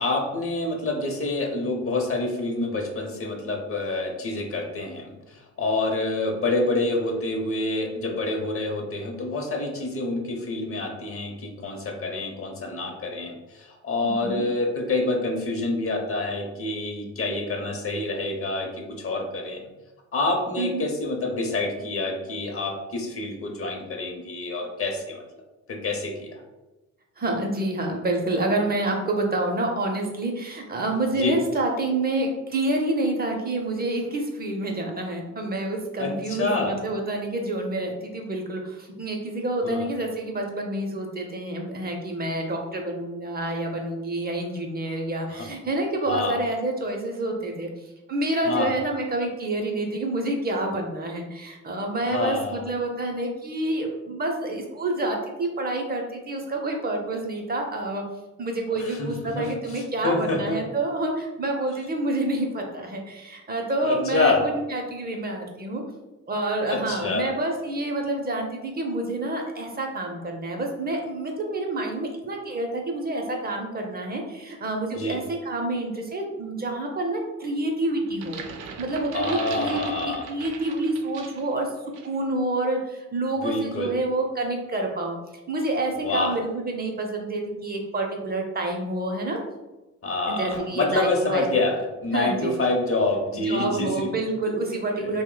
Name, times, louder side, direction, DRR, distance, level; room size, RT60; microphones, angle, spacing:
voice 1, 0.0-19.6 20.1-25.2 25.7-26.4 31.1-31.3 36.0-36.8 39.6-39.9 45.3-45.5 46.1-46.3 48.4-48.7 52.1-52.6 58.8-60.6 63.8-64.4 66.7-67.3 74.9-75.2 79.1-80.3 83.4-83.9 85.9-86.3 90.0-94.1, left 2 dB, 45° left, 2 dB, 0.7 m, -27 dB
voice 2, 14.0-14.4 20.6-20.8 27.2-47.7 48.1-58.0 58.4-65.8 66.3-78.4 78.8-81.7 82.0-85.2 85.5-89.4 90.3-91.5 92.1-92.5 93.3-95.2, right 2 dB, 30° right, 2 dB, 0.5 m, -28 dB
sound 1, 78.1-81.5 81.9-82.2, right 6 dB, 80° right, 0.5 m, -39 dB
2.6 x 2.1 x 3.7 m, 1.1 s
cardioid pair, 90°, 30 cm